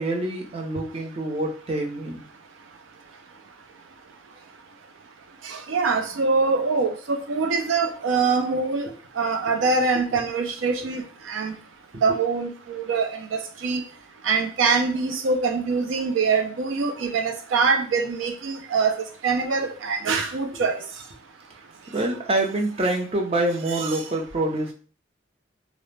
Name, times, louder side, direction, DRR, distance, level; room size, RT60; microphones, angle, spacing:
voice 1, 0.0-2.2 11.9-12.0 21.9-24.7, right 2 dB, 30° right, 0 dB, 0.5 m, -26 dB
voice 2, 5.4-8.9 9.2-11.0 11.3-11.6 12.0-13.2 13.6-13.8 14.2-20.8 23.7-23.9, right 4 dB, 85° right, 7 dB, 0.4 m, -24 dB
2.4 x 2.0 x 3.1 m, 0.41 s
head